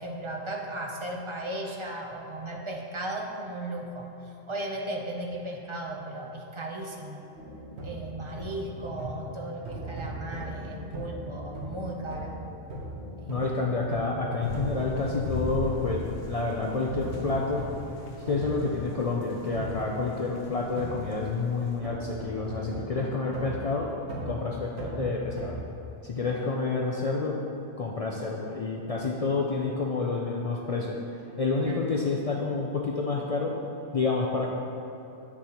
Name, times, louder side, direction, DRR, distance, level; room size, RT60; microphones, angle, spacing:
voice 1, 0.0-7.2 7.8-12.4 13.2-13.4 31.7-31.8, right 1 dB, 35° right, 0 dB, 0.5 m, -36 dB
sound 1, 7.4-25.5, right 1 dB, 70° right, 1.2 m, -39 dB
voice 2, 13.3-17.7 18.3-23.9 24.3-25.6 26.0-27.4 27.8-31.0 31.4-33.5 33.9-34.5, left 3 dB, 60° left, -2 dB, 0.4 m, -29 dB
sound 2, 14.4-21.8, left 2 dB, 75° left, 1.1 m, -38 dB
8.0 x 6.0 x 2.9 m, 2.8 s
omnidirectional pair, 1.2 m